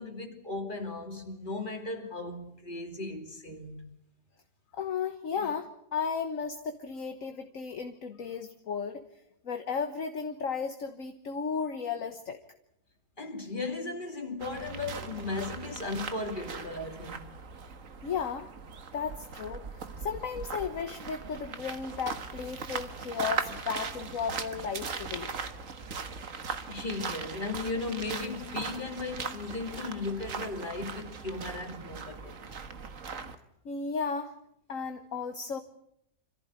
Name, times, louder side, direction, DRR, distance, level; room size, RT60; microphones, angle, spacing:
voice 1, 0.0-3.9 13.2-17.3 26.7-32.4, left 3 dB, 30° left, 3.0 m, -36 dB
voice 2, 4.7-9.0 9.4-12.4 18.0-18.5 18.9-25.3 33.6-34.3 34.7-35.6, left 6 dB, 55° left, 1.6 m, -34 dB
sound 1, 14.4-33.4, right 5 dB, 55° right, 1.8 m, -39 dB
26.5 x 15.0 x 9.6 m
omnidirectional pair, 1.7 m